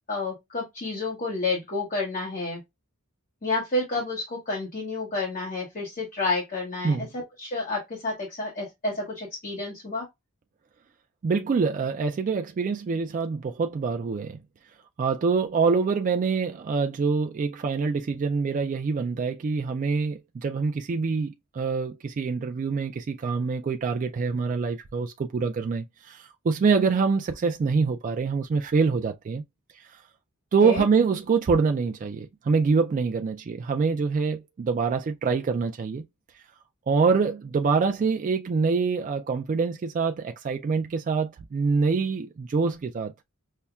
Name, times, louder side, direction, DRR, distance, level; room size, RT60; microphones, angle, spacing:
voice 1, 0.0-2.6 3.4-10.1 30.6-30.8, left 3 dB, 40° left, 1.2 m, -30 dB
voice 2, 11.2-14.4 15.0-29.4 29.7-30.0 30.5-36.0 36.9-43.1, right 5 dB, 35° right, 0.3 m, -25 dB
5.5 x 2.1 x 2.3 m
head